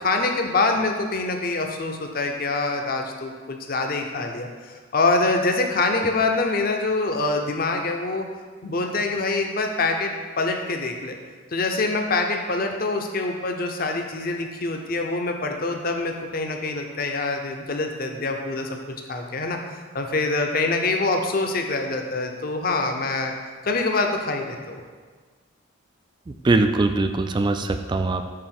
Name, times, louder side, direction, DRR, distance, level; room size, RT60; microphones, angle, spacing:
voice 1, 0.0-8.2 8.6-11.2 11.5-19.6 19.9-23.3 23.6-24.8, left 3 dB, 45° left, 3 dB, 0.7 m, -25 dB
voice 2, 26.4-28.3, right 2 dB, 25° right, 7 dB, 0.3 m, -21 dB
6.7 x 3.6 x 5.9 m, 1.5 s
head